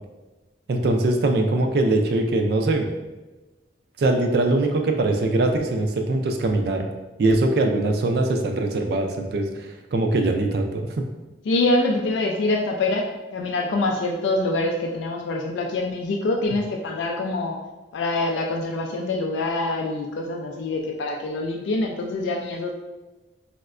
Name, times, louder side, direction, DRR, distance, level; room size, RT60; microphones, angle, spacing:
voice 1, 0.7-2.9 4.0-6.9 7.2-11.0, right 2 dB, 60° right, 3 dB, 0.3 m, -22 dB
voice 2, 11.5-17.6 17.9-22.7, left 2 dB, 85° left, 1 dB, 0.3 m, -25 dB
4.3 x 2.1 x 2.4 m, 1.1 s
head